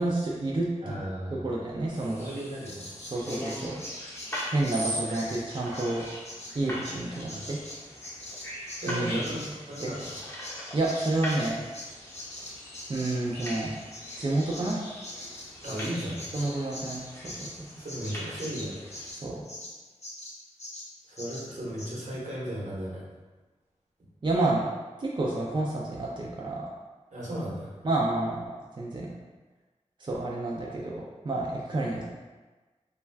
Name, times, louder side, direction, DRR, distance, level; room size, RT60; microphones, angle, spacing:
voice 1, 0.0-1.0 1.3-2.2 3.1-3.8 4.5-6.0 6.5-7.6 8.9-9.2 9.8-9.9 10.7-11.6 12.9-13.8 14.2-14.8 16.3-17.5 19.1-19.5 24.2-24.6 25.0-26.7 27.8-28.5 28.8-29.1 30.0-32.0, right 2 dB, 40° right, -3 dB, 0.4 m, -29 dB
voice 2, 0.8-1.5 1.9-2.9 5.1-5.2 7.2-7.5 8.8-9.4 9.7-10.1 15.6-16.2 17.8-18.7 21.1-23.0 27.1-27.7, right 1 dB, 80° right, -7 dB, 1.0 m, -35 dB
sound 1, 1.9-19.1, equal, 20° left, 0.7 m, -40 dB
Bird vocalization bird call bird song, 2.7-10.6 10.8-19.7 20.0-20.3 20.6-20.9 21.2-21.5 21.8-21.9, left 1 dB, 60° left, 0.6 m, -42 dB
2.3 x 2.2 x 3.3 m, 1.3 s
wide cardioid pair, 50°, 12 cm